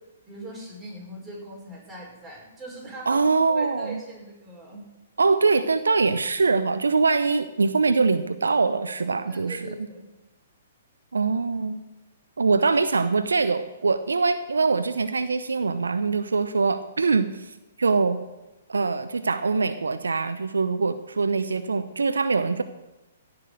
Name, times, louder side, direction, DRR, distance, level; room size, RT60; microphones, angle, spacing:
voice 1, 0.3-4.8 9.1-10.0, right 1 dB, 5° right, -6 dB, 5.6 m, -41 dB
voice 2, 3.1-4.0 5.2-9.7 11.1-11.8 12.4-18.2 18.7-22.6, right 4 dB, 75° right, 11 dB, 0.6 m, -23 dB
16.5 x 6.1 x 7.7 m, 1.0 s
figure-of-eight pair, 120°, 0 cm